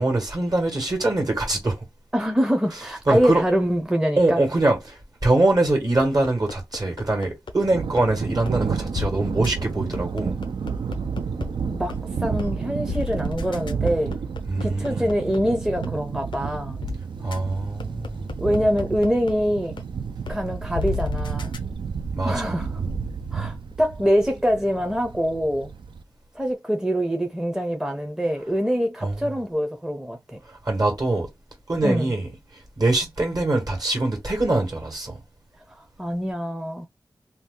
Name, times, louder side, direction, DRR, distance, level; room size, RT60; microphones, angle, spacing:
voice 1, 0.0-1.8 3.1-3.4 4.2-10.4 14.5-15.1 17.2-18.2 22.1-22.6 29.0-29.3 30.5-31.3 31.7-32.3 32.8-35.2, right 2 dB, 55° right, 1.5 m, -23 dB
voice 2, 2.1-4.4 11.7-14.2 14.6-16.8 18.4-19.8 20.3-21.5 22.2-22.7 23.3-25.7 26.3-30.4 31.8-32.1 36.0-36.9, equal, 5° right, 0.5 m, -24 dB
sound 1, 6.0-7.5 8.0-8.1 8.5-8.6 8.9-9.1 9.4-9.5 9.9-11.5 11.9-12.0 12.4-12.5 12.9-15.4 15.8-15.9 16.3-16.4 16.8-16.9 17.3-17.4 17.8-19.3 19.8-19.9 20.3-20.4 20.7-21.6, left 4 dB, 85° left, 0.5 m, -31 dB
Thunder, 7.6-26.0, right 6 dB, 85° right, 0.4 m, -31 dB
2.7 x 2.3 x 3.6 m
wide cardioid pair, 60°, 8 cm